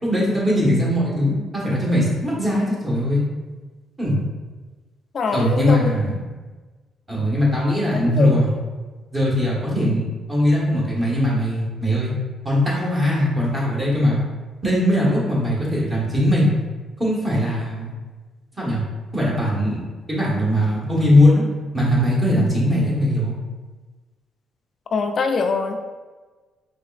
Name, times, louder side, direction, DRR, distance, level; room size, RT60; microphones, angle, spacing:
voice 1, 0.0-3.2 4.0-4.1 5.3-6.3 7.1-8.5 9.1-12.1 12.4-14.2 14.6-16.6 17.0-17.9 18.6-18.8 19.1-21.4 21.7-23.4, left 1 dB, 20° right, -5 dB, 1.4 m, -20 dB
voice 2, 5.1-5.9 8.1-8.3 24.9-25.8, left 4 dB, 50° left, 5 dB, 0.4 m, -23 dB
4.2 x 3.0 x 2.4 m, 1.3 s
cardioid pair, 90°, 0 cm